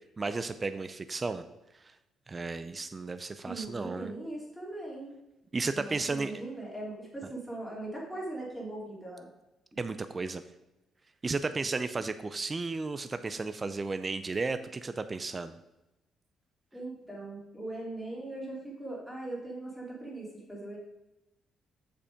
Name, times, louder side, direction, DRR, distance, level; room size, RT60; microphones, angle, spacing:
voice 1, 0.2-1.4 1.7-1.9 2.3-4.1 5.5-6.4 9.8-10.4 11.2-15.6, right 3 dB, 30° right, 11 dB, 0.4 m, -34 dB
voice 2, 3.4-5.2 5.7-9.3 16.7-20.8, right 2 dB, 5° left, -3 dB, 2.9 m, -40 dB
7.1 x 5.1 x 5.0 m, 0.96 s
cardioid pair, 90°, 0 cm